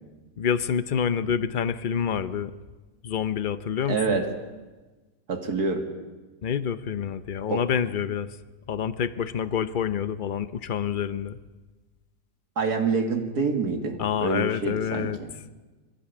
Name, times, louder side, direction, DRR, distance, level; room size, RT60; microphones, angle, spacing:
voice 1, 0.4-2.5 3.0-4.2 6.4-8.3 8.7-11.4 14.0-15.2, left 8 dB, 60° left, 14 dB, 0.5 m, -27 dB
voice 2, 3.9-4.3 5.3-5.9 7.5-7.6 12.6-15.1, right 4 dB, 65° right, 4 dB, 2.7 m, -26 dB
22.5 x 15.5 x 8.5 m, 1.2 s
omnidirectional pair, 1.8 m